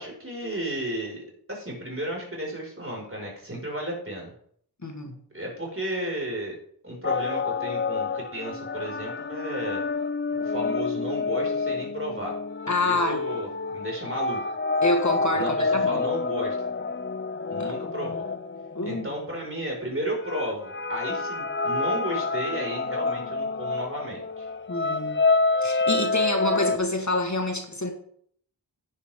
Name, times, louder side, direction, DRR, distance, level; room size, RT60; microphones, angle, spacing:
voice 1, 0.0-4.3 5.3-6.5 6.8-9.8 10.3-12.3 12.8-14.4 15.3-16.7 17.5-18.2 18.8-24.5, equal, 35° right, -1 dB, 5.6 m, -33 dB
voice 2, 4.8-5.2 12.7-13.2 14.8-16.0 17.6-17.7 18.7-19.1 24.7-25.2 25.6-27.9, left 2 dB, 45° left, 3 dB, 1.7 m, -27 dB
sound 1, 7.0-19.5 20.2-26.8, left 3 dB, 30° left, 0.7 m, -28 dB
11.0 x 10.0 x 3.7 m, 0.62 s
wide cardioid pair, 50°, 40 cm